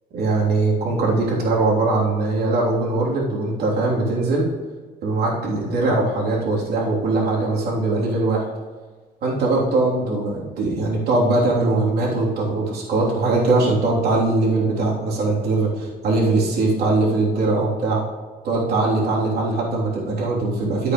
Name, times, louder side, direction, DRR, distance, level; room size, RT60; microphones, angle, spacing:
voice 1, 0.1-4.5 5.0-8.5 9.2-18.0 18.4-20.9, right 2 dB, 65° right, -3 dB, 3.1 m, -21 dB
11.0 x 8.2 x 3.1 m, 1.4 s
cardioid pair, 110°, 17 cm